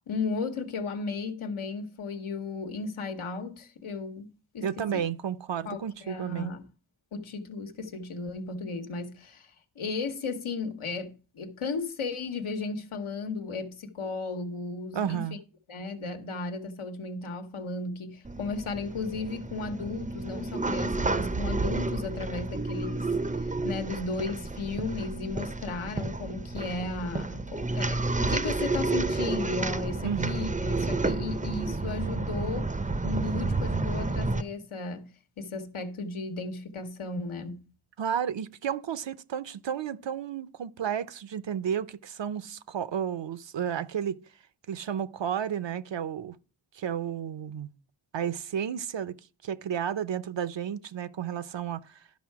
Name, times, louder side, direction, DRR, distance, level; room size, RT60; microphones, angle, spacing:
voice 1, 0.1-5.0 5.6-6.7 7.1-15.3 15.7-32.7 33.0-37.6, left 3 dB, 75° left, 1.3 m, -35 dB
voice 2, 4.6-6.6 14.9-15.4 30.0-30.3 38.0-44.2 44.7-46.4 46.7-47.7 48.1-49.2 49.4-52.0, right 8 dB, 60° right, 0.7 m, -32 dB
sound 1, 18.2-34.4, right 3 dB, 15° right, 0.6 m, -30 dB
11.5 x 5.6 x 4.7 m
wide cardioid pair, 80°, 49 cm